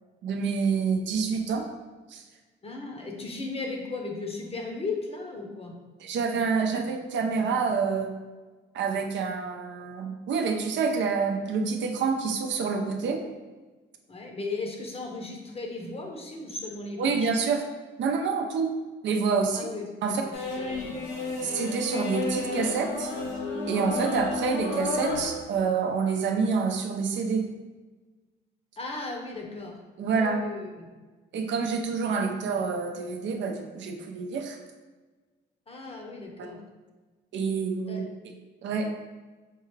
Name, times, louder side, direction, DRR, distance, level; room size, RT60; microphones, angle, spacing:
voice 1, 0.2-1.6 2.1-2.2 6.0-8.1 8.7-13.2 17.0-17.6 18.0-18.7 19.0-19.7 20.0-20.2 21.4-23.1 23.7-27.5 30.0-30.4 31.3-34.6 37.3-38.0 38.6-38.9, right 5 dB, 65° right, 4 dB, 0.5 m, -27 dB
voice 2, 2.6-5.7 14.1-17.3 19.5-21.5 28.8-29.8 30.1-30.9 35.7-36.6 37.9-38.0, left 3 dB, 30° left, 1 dB, 0.7 m, -36 dB
sound 1, 20.3-25.3, left 3 dB, 90° left, 0.7 m, -31 dB
4.5 x 2.3 x 3.2 m, 1.3 s
cardioid pair, 90°, 20 cm